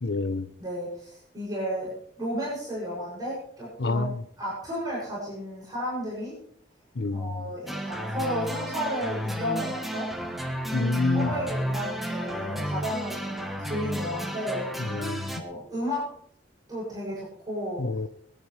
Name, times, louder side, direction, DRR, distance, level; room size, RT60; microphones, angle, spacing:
voice 1, 0.0-0.5 3.8-4.2 7.0-7.4 10.7-11.3 14.8-15.3 17.8-18.1, left 3 dB, 70° left, 0.6 m, -27 dB
voice 2, 0.6-1.9 2.2-4.0 4.4-6.4 7.1-10.1 10.7-14.7 15.3-16.1 16.7-17.8, equal, 20° right, 7.2 m, -33 dB
sound 1, 7.7-15.4, equal, ahead, 1.4 m, -32 dB
22.5 x 10.5 x 3.4 m
head